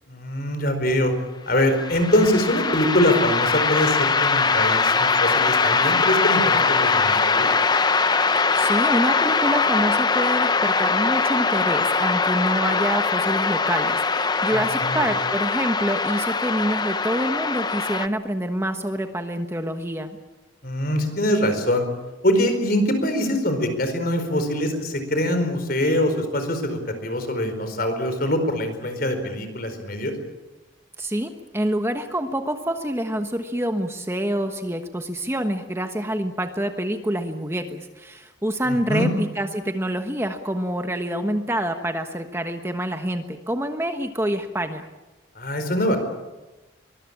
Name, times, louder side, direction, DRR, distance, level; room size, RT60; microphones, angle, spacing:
voice 1, 0.1-1.1 1.5-7.5 14.5-15.1 20.6-21.9 22.2-30.1 38.7-39.1 45.3-46.0, left 1 dB, 50° left, 8 dB, 4.7 m, -23 dB
sound 1, 1.7-18.1, left 4 dB, 20° left, 0.7 m, -22 dB
voice 2, 8.4-20.2 31.0-44.9, right 1 dB, 15° right, 6 dB, 1.2 m, -26 dB
23.5 x 21.5 x 8.7 m, 1.1 s
head